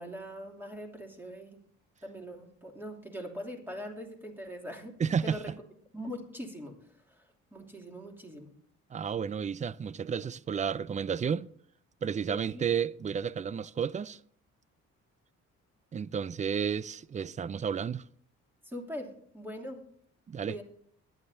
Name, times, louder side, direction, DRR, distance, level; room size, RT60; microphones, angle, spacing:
voice 1, 0.0-1.6 2.0-4.9 5.2-5.5 5.9-6.7 7.1-7.2 7.5-8.5 12.3-12.6 18.6-19.8 20.5-20.6, equal, 5° right, 2.8 m, -42 dB
voice 2, 5.0-5.4 8.9-11.5 12.0-14.2 15.9-18.0 20.3-20.6, right 7 dB, 25° right, 0.4 m, -32 dB
21.5 x 10.0 x 2.7 m
cardioid pair, 90°, 30 cm